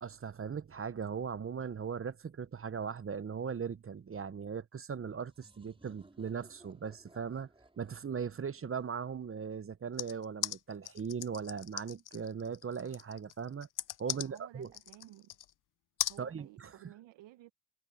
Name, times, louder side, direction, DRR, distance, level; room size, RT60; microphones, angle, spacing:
voice 1, 0.0-7.5 7.8-13.7 14.0-14.7 16.2-16.8, right 6 dB, 30° right, 0.9 m, -39 dB
sound 1, 5.2-9.8, right 2 dB, 10° right, 4.2 m, -62 dB
sound 2, 10.0-15.5 16.0-16.2, left 12 dB, 45° left, 0.6 m, -38 dB
voice 2, 14.1-15.3 16.1-17.5, right 15 dB, 75° right, 1.0 m, -55 dB
supercardioid pair, 75°, 45 cm